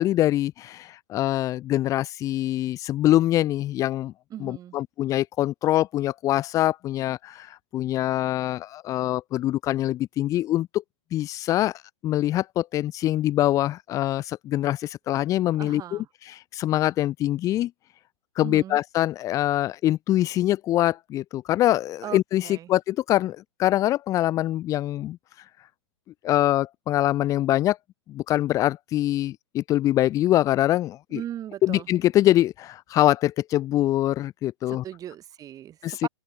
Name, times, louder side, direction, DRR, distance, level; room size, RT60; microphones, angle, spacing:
voice 1, 0.0-4.1 4.4-10.8 11.1-16.0 16.3-17.7 18.4-25.2 26.2-27.8 28.1-31.2 31.6-34.8 35.8-36.1, left 14 dB, 20° left, 0.6 m, -24 dB
voice 2, 4.3-4.8 15.6-16.1 18.4-18.8 22.0-22.7 31.1-31.9 34.7-36.1, right 11 dB, 20° right, 2.7 m, -38 dB
open air
hypercardioid pair, 120°, 16 cm